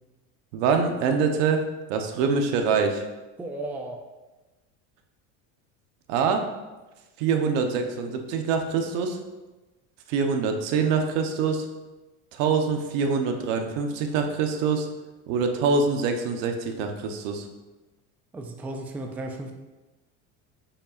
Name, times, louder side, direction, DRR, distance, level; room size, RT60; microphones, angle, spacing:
voice 1, 0.5-1.6 1.9-3.0 6.1-6.4 7.2-9.2 10.1-11.6 12.3-14.9 15.3-17.5, right 5 dB, 80° right, 5 dB, 1.0 m, -24 dB
voice 2, 3.4-4.0 18.3-19.5, right 2 dB, 5° right, 3 dB, 0.3 m, -34 dB
8.6 x 5.6 x 2.5 m, 1.1 s
cardioid pair, 140°, 37 cm